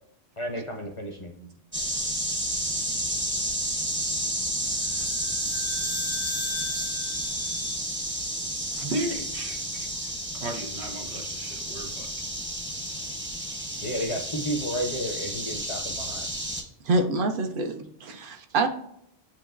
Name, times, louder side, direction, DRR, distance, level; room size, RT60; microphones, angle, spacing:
voice 1, 0.4-1.3 13.8-16.3, equal, 40° left, 2 dB, 0.5 m, -32 dB
sound 1, 1.7-16.6, right 1 dB, 10° right, 0.7 m, -31 dB
sound 2, 4.8-9.3, left 8 dB, 80° left, 0.9 m, -40 dB
voice 2, 8.8-9.9 10.4-12.1, right 1 dB, 85° right, 2 dB, 1.3 m, -34 dB
voice 3, 16.8-18.7, right 2 dB, 60° right, 6 dB, 0.8 m, -26 dB
7.0 x 3.0 x 2.5 m, 0.74 s
omnidirectional pair, 1.1 m